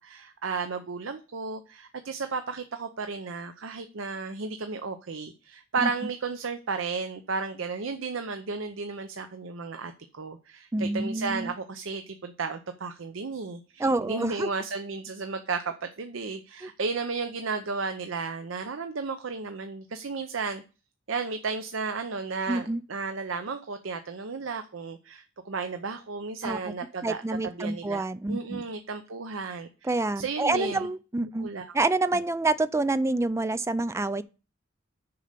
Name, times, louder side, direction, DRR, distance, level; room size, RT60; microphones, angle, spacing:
voice 1, 0.0-20.6 21.1-30.9 31.2-31.7, right 4 dB, 70° right, 0.7 m, -34 dB
voice 2, 10.7-11.5 13.8-14.5 16.6-16.7 22.5-22.8 26.4-26.7 27.0-28.6 29.8-31.5 31.7-34.2, right 2 dB, 15° right, 0.3 m, -27 dB
6.7 x 5.4 x 6.6 m
head